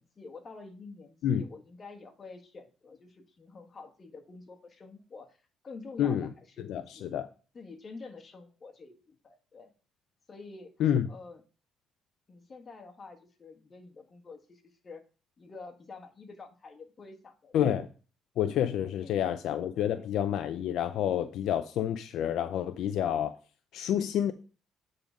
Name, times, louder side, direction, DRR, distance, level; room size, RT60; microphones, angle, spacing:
voice 1, 0.0-5.4 5.6-7.3 7.5-9.7 10.3-10.7 11.1-11.4 12.3-15.0 15.4-17.8 19.0-19.4 19.7-20.1, left 4 dB, 35° left, 6 dB, 1.5 m, -48 dB
voice 2, 6.0-6.3 6.7-7.3 10.8-11.1 17.5-17.9 18.4-23.4 23.7-24.3, left 10 dB, 75° left, 9 dB, 0.5 m, -28 dB
8.7 x 3.9 x 5.1 m, 0.36 s
cardioid pair, 95°, 0 cm